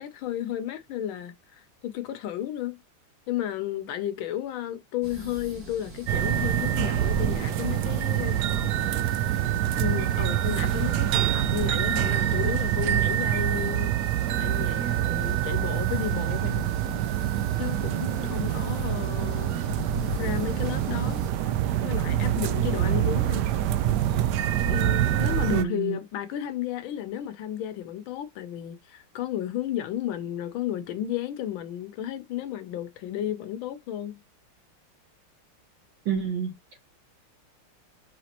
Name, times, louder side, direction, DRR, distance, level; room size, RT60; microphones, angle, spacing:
voice 1, 0.0-2.8 3.3-13.9 14.4-16.7 17.6-19.6 20.2-21.5 21.8-23.5 24.7-34.2, left 11 dB, 75° left, 1.4 m, -33 dB
sound 1, 5.0-21.3, left 1 dB, 45° right, 2.5 m, -42 dB
sound 2, 6.1-25.6, right 12 dB, 90° right, 0.9 m, -26 dB
voice 2, 25.5-26.0 36.0-36.5, right 8 dB, 60° right, 2.8 m, -27 dB
5.0 x 3.5 x 2.8 m
omnidirectional pair, 2.3 m